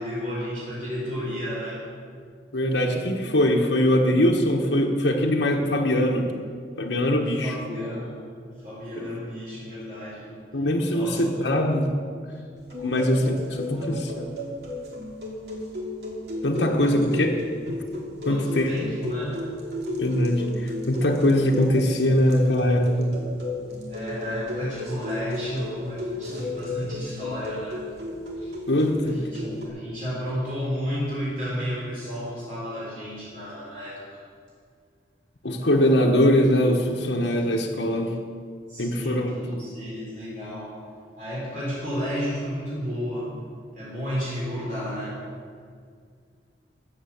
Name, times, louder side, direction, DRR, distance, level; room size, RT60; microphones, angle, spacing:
voice 1, 0.0-1.8 7.4-8.2 8.5-10.3 10.9-11.6 12.8-13.0 13.7-14.1 16.8-17.6 18.3-19.4 23.9-27.8 28.4-28.5 29.0-34.2 38.7-40.7 41.2-43.3 43.7-45.2, equal, 45° right, -7 dB, 4.2 m, -32 dB
voice 2, 2.5-6.3 6.8-7.5 9.0-9.1 10.5-11.9 12.8-14.3 16.4-17.3 17.7-17.8 18.2-18.7 20.0-23.2 28.7-29.2 35.4-38.2 38.8-39.6, left 1 dB, 80° left, 0 dB, 1.3 m, -22 dB
sound 1, 12.6-29.7, left 2 dB, 65° right, 2.7 m, -34 dB
14.5 x 8.4 x 7.2 m, 2.1 s
head